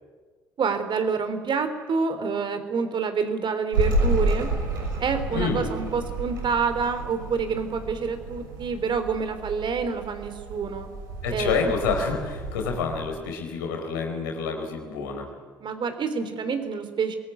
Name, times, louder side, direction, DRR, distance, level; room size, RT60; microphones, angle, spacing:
voice 1, 0.6-4.5 5.0-10.9 11.3-11.7 15.6-17.1, right 5 dB, 45° right, 9 dB, 3.3 m, -27 dB
sound 1, 3.7-13.1, right 2 dB, 85° right, 6.0 m, -30 dB
voice 2, 5.3-5.7 11.2-15.3, left 5 dB, 80° left, 3 dB, 4.4 m, -28 dB
24.5 x 21.0 x 9.6 m, 1.5 s
hypercardioid pair, 50°, 11 cm